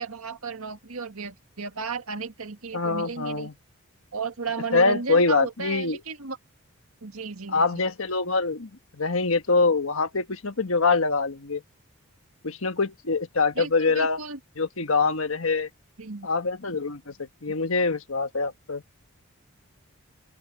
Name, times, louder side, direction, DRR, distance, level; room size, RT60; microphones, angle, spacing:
voice 1, 0.0-3.5 4.1-6.4 7.0-7.8 13.6-14.4 16.0-16.3 17.5-17.6, right 4 dB, 90° right, 1.9 m, -34 dB
voice 2, 2.7-3.5 4.7-6.0 7.5-11.6 12.4-14.2 14.6-15.7 16.2-18.8, left 3 dB, 75° left, 1.4 m, -24 dB
open air
head